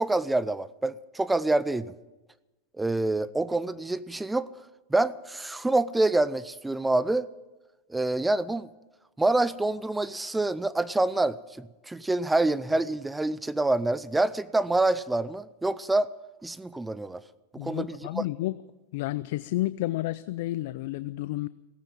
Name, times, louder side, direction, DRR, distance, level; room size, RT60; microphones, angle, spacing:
voice 1, 0.0-1.9 2.8-4.5 4.9-7.3 7.9-8.7 9.2-16.1 16.4-17.2 17.6-18.2, right 2 dB, 5° right, 0.5 m, -26 dB
voice 2, 17.6-18.6 18.9-21.5, left 17 dB, 65° left, 0.4 m, -31 dB
17.0 x 9.3 x 9.1 m
supercardioid pair, 130°, 0 cm